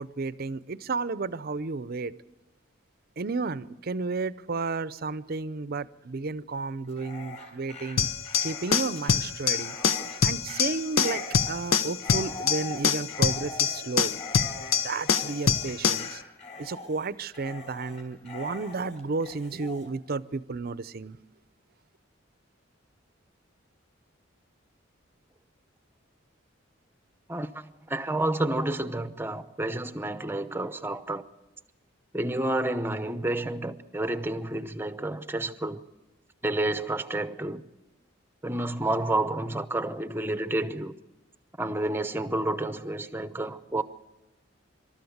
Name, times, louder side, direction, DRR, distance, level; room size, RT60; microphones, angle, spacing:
voice 1, 0.0-2.1 3.2-8.1 8.4-9.7 10.2-14.1 14.8-16.2 16.6-21.2, right 3 dB, 50° right, 0.6 m, -32 dB
Dog, 6.8-19.9, left 3 dB, 35° left, 5.0 m, -42 dB
sound 1, 8.0-16.1, left 7 dB, 90° left, 0.7 m, -25 dB
voice 2, 27.3-31.2 32.1-35.8 36.4-37.6 38.4-40.9 41.6-43.8, right 2 dB, 10° right, 0.7 m, -30 dB
26.5 x 13.0 x 8.0 m
head